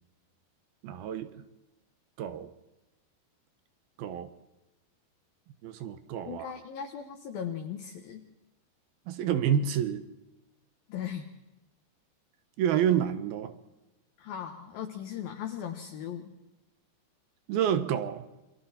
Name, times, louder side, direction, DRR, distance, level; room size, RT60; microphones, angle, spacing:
voice 1, 0.8-1.3 2.2-2.5 4.0-4.3 5.6-6.5 9.1-10.0 12.6-13.5 17.5-18.2, right 9 dB, 65° right, 11 dB, 2.7 m, -28 dB
voice 2, 6.3-8.2 10.9-11.3 14.2-16.3, left 9 dB, 65° left, 4 dB, 2.8 m, -38 dB
29.0 x 24.5 x 4.4 m, 1.0 s
omnidirectional pair, 5.2 m